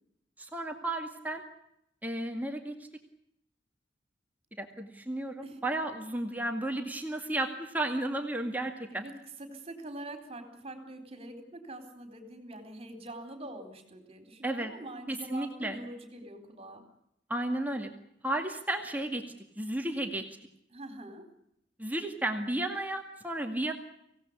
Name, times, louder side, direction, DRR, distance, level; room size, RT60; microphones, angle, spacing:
voice 1, 0.4-1.4 2.0-2.7 4.6-9.0 14.4-14.7 15.1-15.8 17.3-17.9 18.2-19.2 19.6-20.2 21.8-23.7, right 1 dB, 10° right, 3 dB, 2.1 m, -33 dB
voice 2, 9.4-16.8 20.7-21.2, right 1 dB, 30° right, 7 dB, 4.3 m, -44 dB
25.5 x 17.5 x 9.8 m, 0.80 s
head